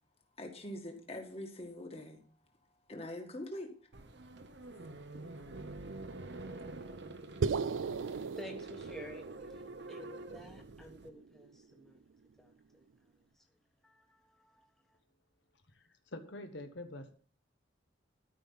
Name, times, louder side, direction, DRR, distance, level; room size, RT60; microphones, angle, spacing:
voice 1, 0.4-2.2 2.9-3.7, left 1 dB, 30° left, 3 dB, 1.9 m, -43 dB
sound 1, 3.9-11.1, right 2 dB, 60° right, 1.0 m, -47 dB
sound 2, 7.4-11.8, right 5 dB, 80° right, 0.4 m, -38 dB
voice 2, 7.7-12.0 12.4-12.9 13.3-13.5 13.8-15.0, equal, ahead, 1 dB, 1.2 m, -52 dB
voice 3, 16.1-17.1, left 1 dB, 65° left, 7 dB, 1.1 m, -45 dB
13.0 x 5.6 x 5.7 m, 0.43 s
head